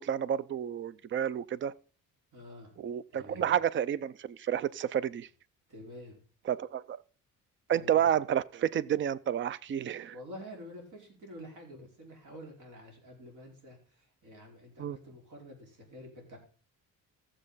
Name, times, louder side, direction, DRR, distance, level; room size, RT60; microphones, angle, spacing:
voice 1, 0.0-1.7 2.8-5.3 6.5-7.0 7.7-10.1 14.8-15.0, right 10 dB, 35° right, 0.5 m, -30 dB
voice 2, 2.3-2.7 3.1-3.5 5.7-6.2 7.7-8.1 10.1-16.4, equal, 65° right, 4.6 m, -48 dB
14.5 x 7.6 x 3.9 m
cardioid pair, 150°, 33 cm